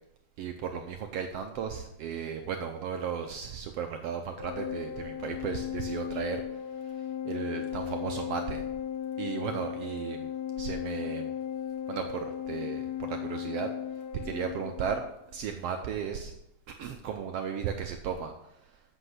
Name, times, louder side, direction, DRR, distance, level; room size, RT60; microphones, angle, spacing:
voice 1, 0.4-6.4 6.8-6.9 7.2-8.6 9.2-10.3 10.6-11.3 11.9-13.7 14.2-15.1 15.3-16.3 16.7-18.3, right 7 dB, 80° right, 5 dB, 1.3 m, -35 dB
Organ, 4.4-15.1, left 9 dB, 75° left, 1.7 m, -36 dB
7.8 x 7.1 x 8.0 m, 0.83 s
omnidirectional pair, 3.6 m